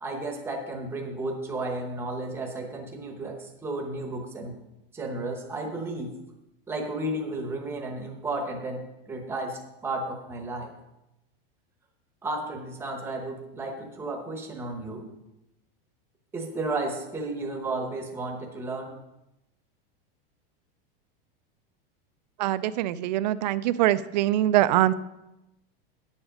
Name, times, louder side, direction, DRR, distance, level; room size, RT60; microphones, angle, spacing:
voice 1, 0.0-4.6 4.9-6.2 6.7-10.7 12.2-15.1 16.3-19.0, right 2 dB, 10° right, 2 dB, 0.9 m, -33 dB
voice 2, 22.4-24.9, right 14 dB, 45° right, 14 dB, 0.4 m, -23 dB
9.8 x 7.2 x 5.0 m, 0.92 s
supercardioid pair, 175°, 30 cm